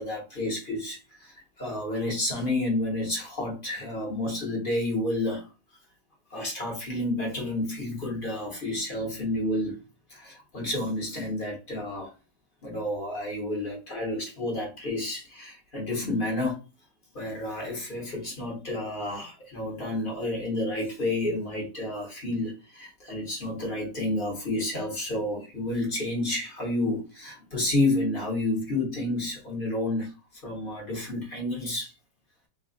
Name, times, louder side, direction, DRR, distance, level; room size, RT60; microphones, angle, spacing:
voice 1, 0.0-5.5 6.3-9.8 10.1-12.1 12.6-16.6 17.1-31.9, left 1 dB, 35° left, 1.1 m, -30 dB
3.3 x 2.3 x 3.7 m
omnidirectional pair, 1.9 m